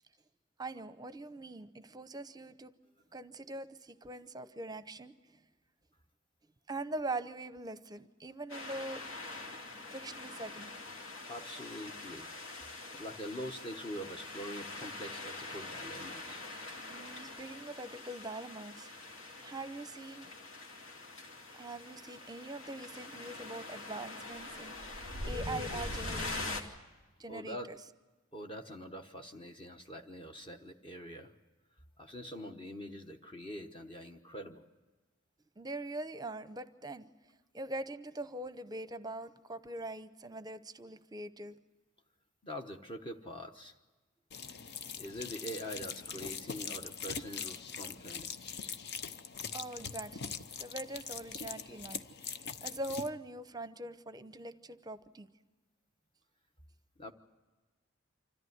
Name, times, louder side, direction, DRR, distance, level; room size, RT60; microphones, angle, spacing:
voice 1, 0.6-2.7 3.1-5.1 6.7-9.0 9.9-10.7 16.9-18.9 19.4-20.3 21.5-26.5 27.2-27.8 35.6-37.1 37.5-41.6 49.5-52.0 52.3-55.3, right 2 dB, 20° right, 12 dB, 0.8 m, -43 dB
sound 1, 8.5-26.6, left 2 dB, 70° left, 2.4 m, -44 dB
voice 2, 11.3-12.3 12.6-16.4 27.3-27.7 28.3-31.3 32.0-34.6 42.4-43.7 45.0-48.5 57.0-57.1, equal, 25° left, 4 dB, 1.1 m, -44 dB
sound 2, 44.3-53.1, left 6 dB, 50° left, 0.8 m, -42 dB
26.0 x 14.0 x 9.4 m, 1.2 s
head